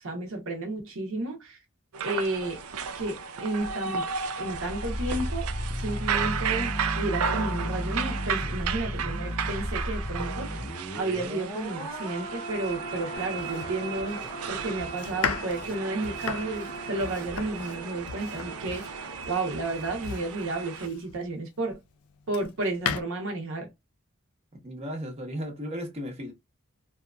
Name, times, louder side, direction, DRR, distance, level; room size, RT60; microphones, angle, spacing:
voice 1, 0.0-1.6 2.0-2.6 2.9-4.0 4.3-5.5 5.7-10.6 10.9-14.2 14.5-21.8 22.3-23.7, right 2 dB, 65° right, 0.8 m, -32 dB
sound 1, 1.9-20.9, right 6 dB, 80° right, 0.4 m, -34 dB
sound 2, 4.3-19.3 19.6-19.8, equal, 20° left, 0.8 m, -36 dB
Domestic sounds home sounds, 13.1-21.3 21.9-23.0, left 6 dB, 80° left, 0.4 m, -37 dB
voice 2, 24.5-26.3, equal, 30° right, 0.8 m, -35 dB
2.8 x 2.4 x 2.2 m
head